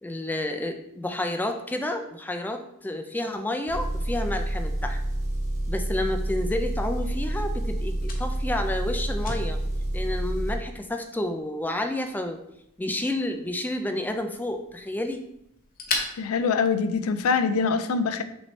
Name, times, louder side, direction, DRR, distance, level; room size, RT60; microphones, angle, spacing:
voice 1, 0.0-5.0 5.7-9.6 9.9-12.4 12.8-15.2, left 1 dB, 10° left, 6 dB, 0.3 m, -30 dB
Engine, 3.7-10.6, right 1 dB, 10° right, 1.2 m, -28 dB
Fire, 5.9-17.4, left 3 dB, 40° left, 0.8 m, -40 dB
voice 2, 16.2-18.2, left 5 dB, 80° left, 11 dB, 0.4 m, -24 dB
6.0 x 2.7 x 3.2 m, 0.77 s
head